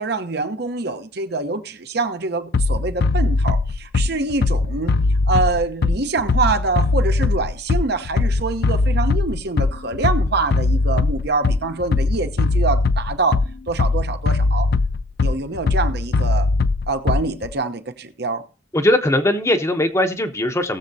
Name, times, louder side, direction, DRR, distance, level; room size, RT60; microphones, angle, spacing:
voice 1, 0.0-5.0 5.3-14.7 15.2-16.5 16.9-18.4, right 3 dB, 60° right, 1.0 m, -25 dB
Bass drum, 2.5-17.5, left 3 dB, 55° left, 0.4 m, -20 dB
voice 2, 18.7-20.8, left 1 dB, 15° left, 0.8 m, -19 dB
19.0 x 7.3 x 2.7 m
head